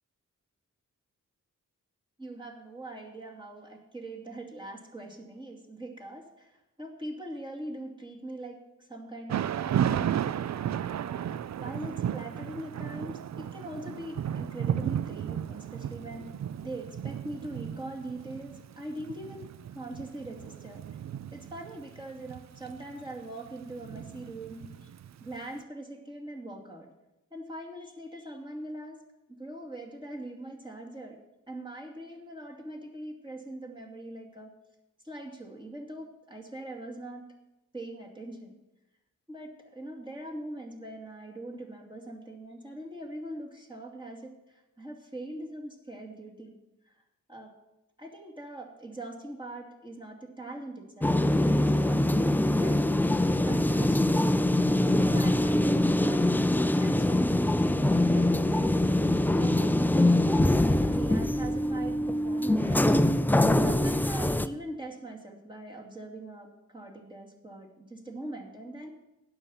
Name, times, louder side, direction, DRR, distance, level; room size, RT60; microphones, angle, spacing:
voice 1, 2.2-16.3 16.6-20.8 21.3-24.9 25.2-26.9 27.3-29.0 29.3-31.2 31.5-34.5 35.0-37.2 37.7-38.6 39.3-46.6 46.9-47.0 47.3-47.5 48.0-52.8 53.2-54.3 54.5-54.7 55.0-59.0 59.4-63.0 63.6-68.9, right 1 dB, 15° right, 1 dB, 2.5 m, -42 dB
Thunder / Rain, 9.3-25.3, right 9 dB, 55° right, 0.4 m, -34 dB
sound 1, 51.0-64.5, left 1 dB, 5° left, 0.4 m, -24 dB
9.6 x 7.2 x 7.3 m, 0.95 s
cardioid pair, 65°, 32 cm